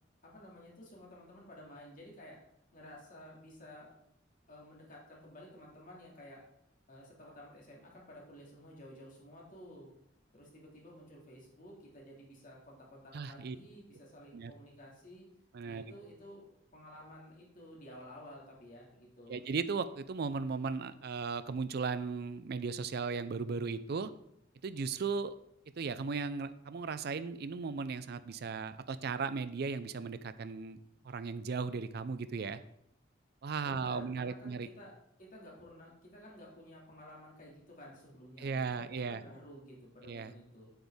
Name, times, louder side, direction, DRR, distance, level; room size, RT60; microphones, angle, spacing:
voice 1, 0.2-2.4 2.7-3.9 4.5-6.4 6.9-9.9 10.3-15.2 15.6-19.4 33.6-40.7, equal, 45° left, -3 dB, 2.3 m, -53 dB
voice 2, 13.1-13.6 14.3-14.5 15.5-15.8 19.3-24.1 24.6-25.3 25.8-30.8 31.0-32.6 33.4-34.7 38.4-39.2 40.0-40.3, right 5 dB, 55° right, 13 dB, 0.4 m, -36 dB
7.9 x 7.9 x 3.5 m, 0.75 s
head